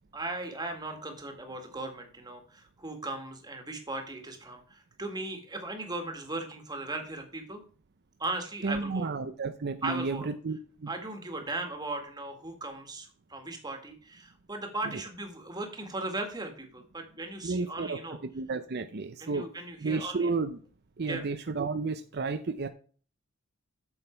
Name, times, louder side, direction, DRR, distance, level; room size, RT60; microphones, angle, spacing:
voice 1, 0.1-7.6 8.2-9.1 9.8-10.3 10.9-18.2 19.2-20.3 21.0-21.2, right 2 dB, 20° right, 4 dB, 1.9 m, -37 dB
voice 2, 8.6-10.9 14.8-15.0 17.4-19.5 19.8-20.6 21.0-22.7, right 4 dB, 50° right, 8 dB, 0.6 m, -32 dB
8.8 x 6.4 x 4.5 m, 0.41 s
head